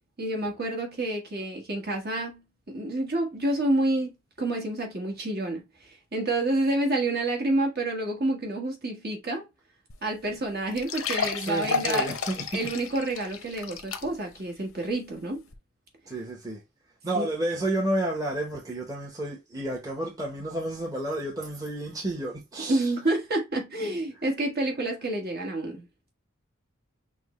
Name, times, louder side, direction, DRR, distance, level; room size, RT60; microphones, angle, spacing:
voice 1, 0.2-2.4 2.7-4.1 4.4-9.4 10.0-12.2 12.5-15.4 17.1-17.3 22.7-25.8, right 2 dB, 50° right, 1.4 m, -28 dB
sound 1, 9.9-10.0 10.3-10.4 10.8-14.4 14.8-14.9 15.5-15.6, left 5 dB, 90° left, 0.7 m, -31 dB
voice 2, 10.9-12.4 16.1-16.6 17.0-22.9, right 1 dB, 20° right, 1.0 m, -31 dB
6.2 x 2.2 x 3.1 m
head